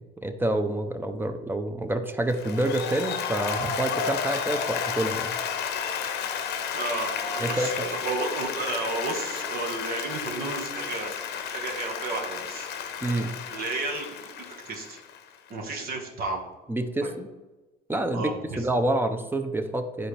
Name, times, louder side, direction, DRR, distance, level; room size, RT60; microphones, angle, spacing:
voice 1, 0.0-5.4 7.4-7.9 13.0-13.4 16.7-17.3 17.9-18.3 18.6-20.1, right 1 dB, 10° right, 7 dB, 0.7 m, -28 dB
Applause, 2.3-15.5, left 7 dB, 80° left, 0.8 m, -32 dB
voice 2, 6.7-12.7 13.5-15.0 15.5-16.4 17.0-17.1 18.1-18.6, right 3 dB, 60° right, 1 dB, 1.6 m, -33 dB
10.5 x 4.5 x 3.4 m, 1.1 s
cardioid pair, 110°, 17 cm